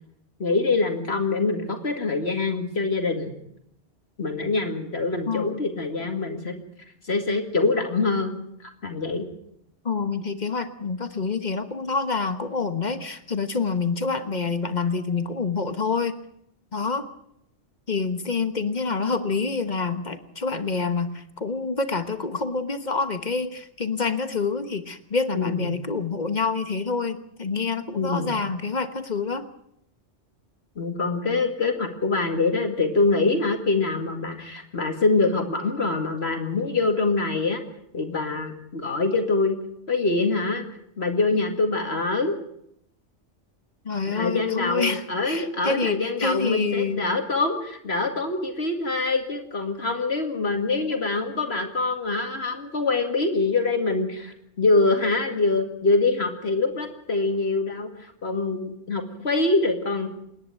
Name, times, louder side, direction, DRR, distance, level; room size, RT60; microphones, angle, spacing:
voice 1, 0.4-3.3 4.2-6.6 7.0-8.3 8.8-9.3 25.3-25.7 27.9-28.4 30.8-37.6 37.9-39.6 39.9-40.6 41.0-42.4 44.1-60.1, left 3 dB, 65° left, 5 dB, 2.4 m, -24 dB
voice 2, 5.3-5.6 9.8-16.1 16.7-17.1 17.9-29.5 43.8-47.1, left 4 dB, 40° left, 10 dB, 1.4 m, -27 dB
27.5 x 10.5 x 9.2 m, 0.74 s
omnidirectional pair, 1.2 m